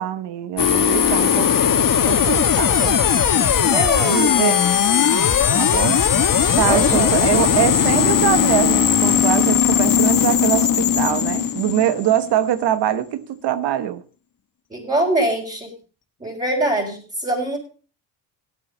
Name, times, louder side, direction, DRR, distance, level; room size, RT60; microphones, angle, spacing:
voice 1, 0.0-3.0 4.0-4.6 5.5-6.0 6.4-14.0, right 11 dB, 85° right, 1.2 m, -23 dB
sound 1, 0.6-12.5, left 8 dB, 55° left, 1.6 m, -18 dB
voice 2, 3.7-4.6 6.7-7.4 14.7-15.7 16.2-17.6, right 1 dB, 20° right, 4.6 m, -23 dB
16.5 x 8.7 x 5.3 m
cardioid pair, 85°, 40 cm